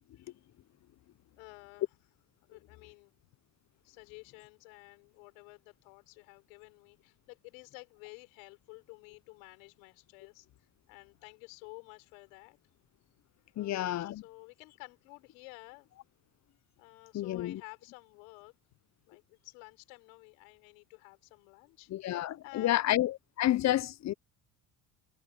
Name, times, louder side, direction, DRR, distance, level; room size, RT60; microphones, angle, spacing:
voice 1, 1.4-1.9 2.5-3.2 3.8-10.5 10.9-12.6 13.5-15.9 16.8-18.5 19.1-23.0, left 31 dB, 90° left, 4.7 m, -52 dB
voice 2, 13.6-14.2 17.1-17.6 21.9-24.1, left 13 dB, 45° left, 0.7 m, -30 dB
supercardioid pair, 85°, 39 cm